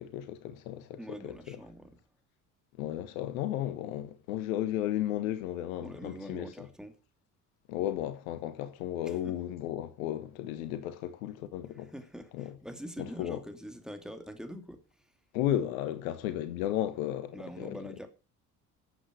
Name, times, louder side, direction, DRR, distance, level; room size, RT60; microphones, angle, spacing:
voice 1, 0.0-1.6 2.8-6.5 7.7-11.9 12.3-12.5 13.0-13.4 15.3-17.8, left 12 dB, 60° left, 1.5 m, -34 dB
voice 2, 1.0-2.0 5.8-6.9 9.0-9.3 11.8-15.0 17.3-18.1, equal, ahead, 2.8 m, -44 dB
14.0 x 8.5 x 6.3 m
figure-of-eight pair, 60°, 45 cm